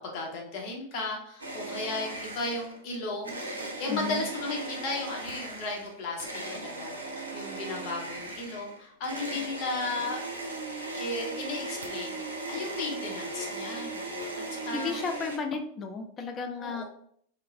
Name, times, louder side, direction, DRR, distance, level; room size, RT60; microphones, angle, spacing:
voice 1, 0.0-3.4 3.8-10.2 10.9-14.1 14.4-15.0 16.6-16.8, left 2 dB, 50° left, -1 dB, 0.8 m, -35 dB
sound 1, 1.4-2.8 3.2-15.4, right 2 dB, 85° right, 0.4 m, -38 dB
voice 2, 3.9-4.2 14.7-16.8, left 4 dB, 30° left, 4 dB, 0.4 m, -33 dB
2.3 x 2.1 x 3.1 m, 0.64 s
figure-of-eight pair, 90°, 0 cm